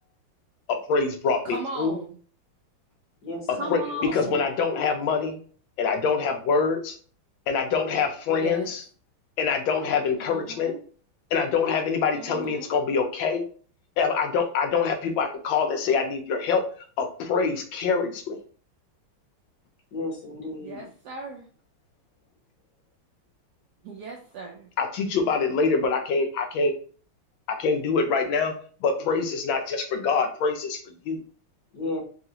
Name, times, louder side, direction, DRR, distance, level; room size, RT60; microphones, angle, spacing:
voice 1, 0.9-2.0 3.7-3.8 4.1-5.4 5.8-7.0 7.5-8.8 9.4-10.7 11.3-13.4 14.0-16.6 17.0-18.4 24.8-26.7 27.5-28.5 28.8-31.2, left 5 dB, 75° left, 5 dB, 1.3 m, -25 dB
voice 2, 1.4-2.2 3.5-4.4 8.4-8.7 10.2-10.8 12.1-12.7 20.6-21.5 23.8-24.7, right 3 dB, 75° right, 0 dB, 0.9 m, -37 dB
voice 3, 3.2-4.5 19.9-20.9 31.7-32.0, left 2 dB, 55° left, -2 dB, 1.3 m, -34 dB
3.5 x 2.4 x 2.8 m, 0.42 s
omnidirectional pair, 2.2 m